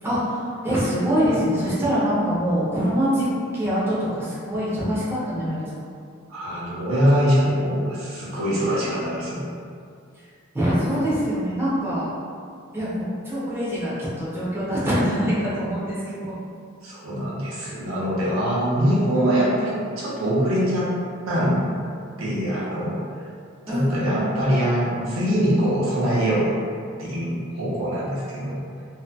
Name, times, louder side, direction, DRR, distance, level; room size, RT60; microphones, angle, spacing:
voice 1, 0.0-3.3 3.5-5.7 10.1-10.2 10.5-12.1 12.7-16.3 23.7-24.4, equal, 10° right, -10 dB, 0.5 m, -24 dB
voice 2, 6.3-9.4 16.8-20.9 21.3-21.8 22.2-23.0 23.7-26.5 27.0-28.6, equal, 85° right, -7 dB, 0.7 m, -23 dB
2.6 x 2.5 x 2.2 m, 2.3 s
head